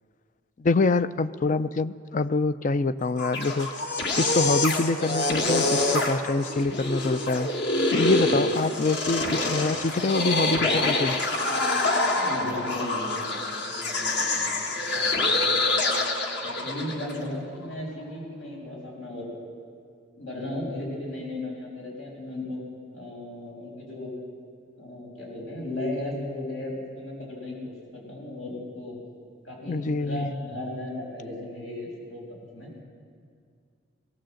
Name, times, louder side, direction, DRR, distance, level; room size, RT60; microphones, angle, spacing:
voice 1, 0.6-7.5 7.9-11.2 29.7-30.3, left 3 dB, 40° left, 15 dB, 0.4 m, -25 dB
sound 1, 3.0-17.2, left 2 dB, 55° left, 1.7 m, -26 dB
voice 2, 12.1-16.0 16.4-19.3 20.2-22.6 22.9-24.1 24.8-29.0 29.4-32.7, left 1 dB, 80° left, -2 dB, 6.2 m, -36 dB
19.5 x 17.5 x 7.7 m, 2.2 s
head